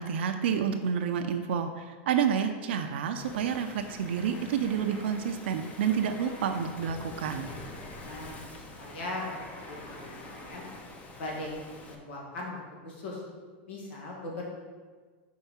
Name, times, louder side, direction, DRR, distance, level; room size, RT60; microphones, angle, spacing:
voice 1, 0.0-7.5, right 7 dB, 80° right, 5 dB, 0.5 m, -29 dB
Waves surf, 3.2-11.9, left 2 dB, 25° left, 0.7 m, -46 dB
sound 1, 4.0-10.8, left 1 dB, 45° left, 1.3 m, -50 dB
voice 2, 8.0-8.4 8.8-9.3 9.7-10.6 11.1-11.5 11.9-12.6 12.8-13.2 13.7-14.4, left 2 dB, 85° left, -2 dB, 2.0 m, -39 dB
4.6 x 4.4 x 5.6 m, 1.4 s
supercardioid pair, 145°, 6 cm